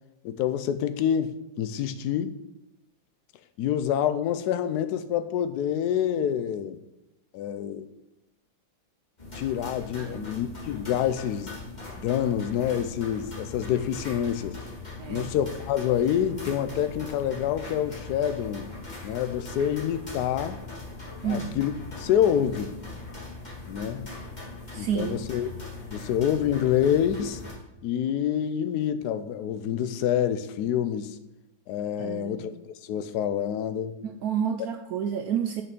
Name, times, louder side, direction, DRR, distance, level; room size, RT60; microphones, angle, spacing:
voice 1, 0.2-2.3 3.6-6.8 7.3-7.9 9.3-11.6 12.0-14.6 15.1-18.7 19.0-20.6 21.2-21.7 22.0-22.7 23.7-24.1 24.7-25.5 25.9-27.4 27.8-31.2 31.7-32.5 32.9-34.0, left 9 dB, 70° left, 1.0 m, -27 dB
sound 1, 9.2-27.5, left 3 dB, 25° left, 2.1 m, -40 dB
voice 2, 10.0-10.3 15.0-15.3 21.2-21.6 24.7-25.2 32.0-32.5 34.0-35.6, right 8 dB, 75° right, 0.8 m, -30 dB
6.2 x 5.8 x 6.0 m
omnidirectional pair, 2.1 m